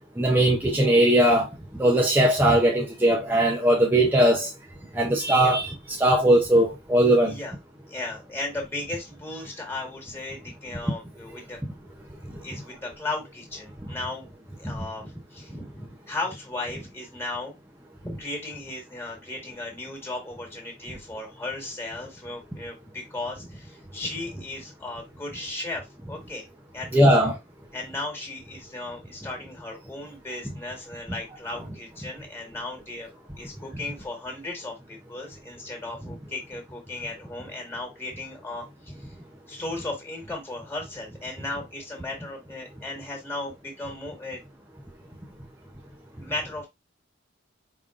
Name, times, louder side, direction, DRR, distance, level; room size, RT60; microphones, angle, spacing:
voice 1, 0.2-1.5 1.8-4.5 5.0-7.4 26.9-27.3, right 1 dB, 10° right, 0.6 m, -19 dB
voice 2, 7.9-11.6 12.4-17.6 18.0-26.5 26.7-27.3 27.7-33.1 33.4-44.4 46.2-46.7, left 2 dB, 10° left, 1.7 m, -36 dB
5.1 x 3.7 x 2.5 m
head